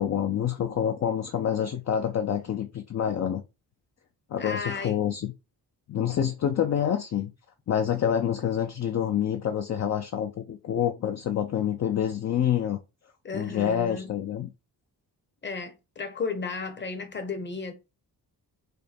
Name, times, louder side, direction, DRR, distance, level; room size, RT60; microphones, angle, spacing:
voice 1, 0.0-3.4 4.3-5.3 5.9-7.3 7.7-12.8 13.3-14.5, left 9 dB, 45° left, 0.5 m, -27 dB
voice 2, 4.4-5.0 13.2-14.1 15.4-17.7, left 4 dB, 30° left, 0.9 m, -34 dB
5.3 x 2.2 x 4.2 m
wide cardioid pair, 135°, 37 cm